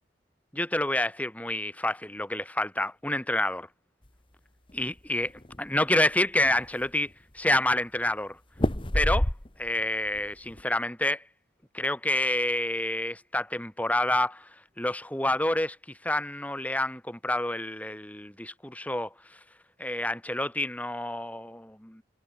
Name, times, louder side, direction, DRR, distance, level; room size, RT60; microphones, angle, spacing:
voice 1, 0.5-3.7 4.7-5.3 5.6-8.4 8.9-9.3 9.6-11.2 11.7-14.5 14.8-15.8 16.0-19.1 19.8-22.0, left 1 dB, 10° left, 2.4 m, -28 dB
sound 1, 4.7-5.6 6.1-6.2 6.4-7.1 8.6-9.8 10.2-10.6, left 1 dB, 25° left, 1.5 m, -28 dB
head